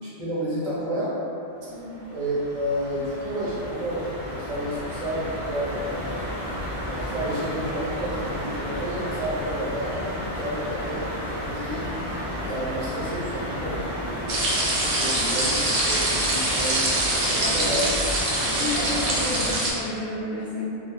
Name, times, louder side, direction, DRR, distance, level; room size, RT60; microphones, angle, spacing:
voice 1, 0.0-1.2 2.1-6.3 6.8-11.9 12.3-14.5 15.0-17.9 19.0-19.4, right 1 dB, 40° right, -9 dB, 0.5 m, -31 dB
sound 1, 1.6-19.6, left 1 dB, 35° left, 0.8 m, -32 dB
voice 2, 1.7-2.1 15.0-15.2 17.2-17.7 18.4-20.6, left 1 dB, 65° left, -11 dB, 0.8 m, -32 dB
sound 2, 14.3-19.7, right 1 dB, 85° right, 0.9 m, -24 dB
2.2 x 2.0 x 2.8 m, 2.9 s
omnidirectional pair, 1.1 m